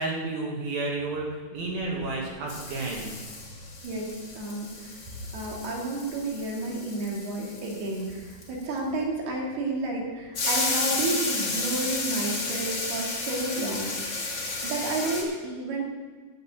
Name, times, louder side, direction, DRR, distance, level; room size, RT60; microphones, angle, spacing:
voice 1, 0.0-3.1, right 2 dB, 75° right, -2 dB, 3.5 m, -31 dB
sound 1, 1.8-2.2 2.5-8.8 10.3-15.2, left 3 dB, 35° left, 2.2 m, -32 dB
voice 2, 3.8-5.0 5.3-14.3 14.6-15.8, right 2 dB, 90° right, -2 dB, 4.3 m, -31 dB
10.5 x 6.6 x 8.8 m, 1.5 s
omnidirectional pair, 4.4 m